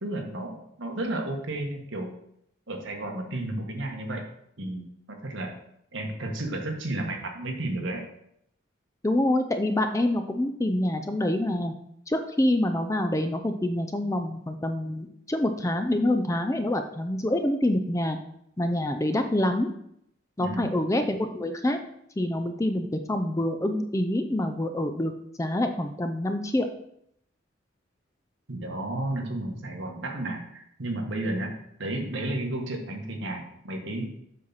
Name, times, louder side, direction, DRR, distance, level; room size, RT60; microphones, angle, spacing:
voice 1, 0.0-2.1 2.7-4.2 4.6-5.5 5.9-8.0 20.4-20.8 28.5-31.5 31.8-34.2, right 1 dB, 70° right, 2 dB, 1.4 m, -32 dB
voice 2, 9.0-11.7 12.1-18.2 18.6-19.7 20.4-21.8 22.2-25.1 25.4-26.7, left 1 dB, 15° left, 7 dB, 0.4 m, -26 dB
7.7 x 5.8 x 4.0 m, 0.73 s
head